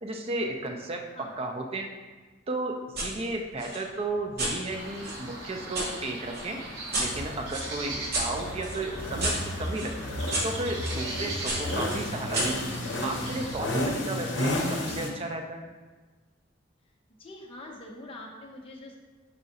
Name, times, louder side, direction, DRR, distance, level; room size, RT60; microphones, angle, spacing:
voice 1, 0.0-1.9 2.5-6.6 7.0-9.9 10.4-12.5 13.0-15.6, right 2 dB, 30° right, 3 dB, 0.4 m, -34 dB
sound 1, 3.0-3.1 3.6-5.9 6.3-11.0 11.5-13.3, right 1 dB, 55° right, 1.0 m, -34 dB
sound 2, 4.7-13.6, right 1 dB, 80° right, 1.1 m, -39 dB
sound 3, 7.0-15.1, left 1 dB, 65° left, 0.7 m, -32 dB
voice 2, 17.1-18.9, left 1 dB, 30° left, -1 dB, 0.5 m, -44 dB
4.7 x 4.1 x 2.7 m, 1.3 s
head